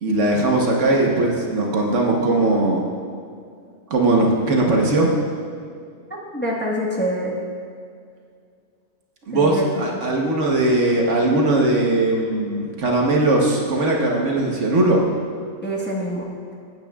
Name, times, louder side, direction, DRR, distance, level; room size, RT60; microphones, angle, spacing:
voice 1, 0.0-2.8 3.9-5.1 9.2-15.0, right 2 dB, 60° right, -1 dB, 1.3 m, -19 dB
voice 2, 6.1-7.3 9.3-9.7 15.6-16.2, equal, 10° left, -4 dB, 1.1 m, -25 dB
14.0 x 9.1 x 2.3 m, 2.2 s
omnidirectional pair, 1.4 m